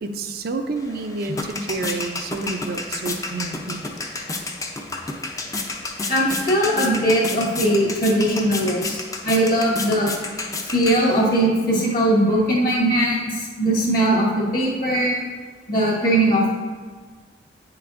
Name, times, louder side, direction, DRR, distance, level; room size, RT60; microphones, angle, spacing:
voice 1, 0.0-3.8, right 3 dB, 55° right, 6 dB, 0.4 m, -29 dB
sound 1, 0.8-11.5, left 2 dB, 20° left, 0.5 m, -31 dB
voice 2, 6.1-9.0 9.2-10.1 10.7-15.2 15.7-16.6, right 1 dB, 50° left, -4 dB, 1.8 m, -20 dB
7.9 x 5.9 x 2.5 m, 1.5 s
head